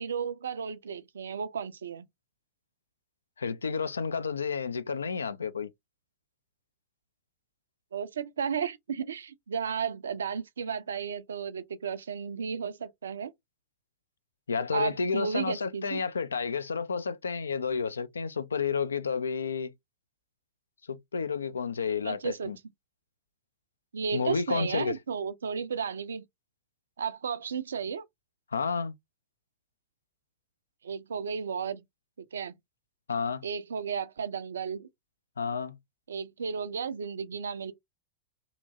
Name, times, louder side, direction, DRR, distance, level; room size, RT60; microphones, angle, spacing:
voice 1, 0.0-2.0 7.9-13.3 14.7-16.0 22.0-22.5 23.9-26.2 27.0-28.0 30.8-31.8 32.2-32.5 33.4-34.9 36.1-37.7, right 6 dB, 70° right, 0.4 m, -33 dB
voice 2, 3.4-5.7 14.5-19.7 20.9-22.6 24.1-25.0 28.5-28.9 33.1-33.5 35.4-35.8, left 5 dB, 75° left, 0.3 m, -31 dB
2.8 x 2.5 x 2.5 m
figure-of-eight pair, 90°, 0 cm